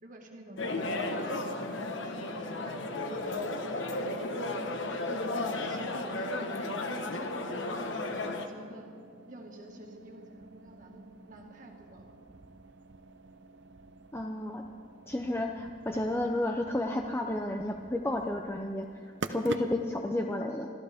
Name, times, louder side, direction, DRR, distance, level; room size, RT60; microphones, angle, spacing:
voice 1, 0.0-2.8 3.2-4.6 5.6-6.8 7.1-8.9 9.3-12.1, right 1 dB, 45° right, 1 dB, 2.0 m, -49 dB
sound 1, 0.6-8.5, left 2 dB, 85° left, 1.2 m, -34 dB
sound 2, 7.2-20.1, right 3 dB, 70° right, 0.8 m, -47 dB
voice 2, 14.1-14.6 15.1-20.7, left 1 dB, 15° left, 2 dB, 0.6 m, -32 dB
25.5 x 14.0 x 3.6 m, 2.1 s
head